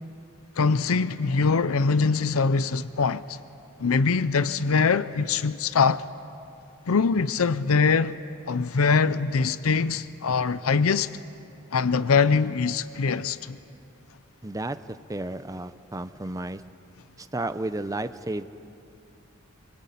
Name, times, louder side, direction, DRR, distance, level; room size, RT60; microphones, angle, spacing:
voice 1, 0.6-3.4 3.8-6.1 6.9-8.2 8.5-11.1 11.7-13.6, left 5 dB, 85° left, 0.6 m, -23 dB
voice 2, 14.4-14.8 15.1-16.6 17.2-18.4, right 2 dB, 15° right, 0.6 m, -32 dB
24.5 x 24.0 x 8.5 m
head